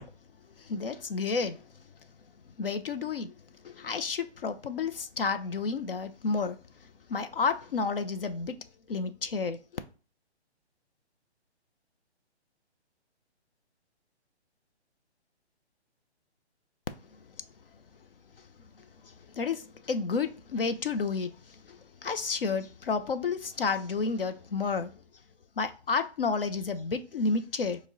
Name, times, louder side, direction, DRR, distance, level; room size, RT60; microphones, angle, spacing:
voice 1, 0.6-1.6 2.6-3.3 3.6-6.6 7.1-8.6 8.9-9.6 19.0-21.3 21.7-24.9 25.6-27.8, left 4 dB, 55° left, 0.4 m, -31 dB
6.0 x 2.1 x 3.7 m
hypercardioid pair, 175°, 34 cm